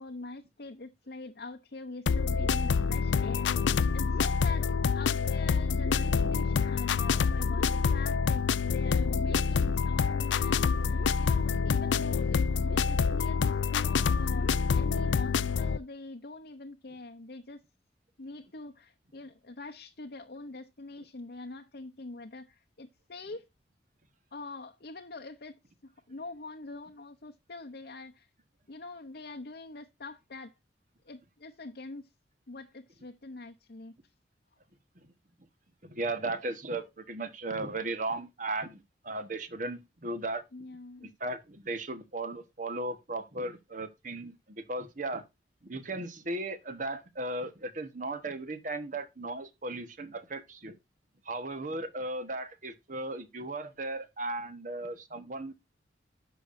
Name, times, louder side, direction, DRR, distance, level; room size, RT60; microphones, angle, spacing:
voice 1, 0.0-3.5 3.9-4.7 4.9-17.6 18.2-23.5 24.3-25.6 25.8-28.3 28.7-30.5 31.1-32.1 32.5-33.9 40.5-41.1, left 3 dB, 60° left, 0.8 m, -44 dB
sound 1, 2.1-15.8, left 5 dB, 90° left, 0.4 m, -27 dB
voice 2, 35.8-40.4 41.0-45.2 45.6-50.8 51.2-55.5, right 2 dB, 45° right, 1.3 m, -36 dB
11.0 x 6.8 x 2.6 m
head